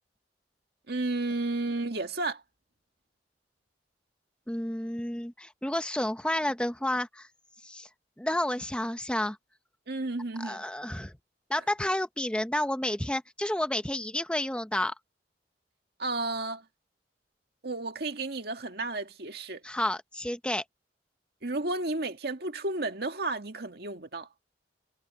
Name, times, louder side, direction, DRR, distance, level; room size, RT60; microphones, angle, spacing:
voice 1, 0.9-2.4 9.9-10.6 16.0-16.6 17.6-19.6 21.4-24.3, right 2 dB, 60° right, 2.0 m, -32 dB
voice 2, 4.5-7.3 7.6-7.9 8.2-9.4 10.4-11.1 11.5-14.9 19.6-20.6, left 1 dB, 5° left, 0.7 m, -30 dB
head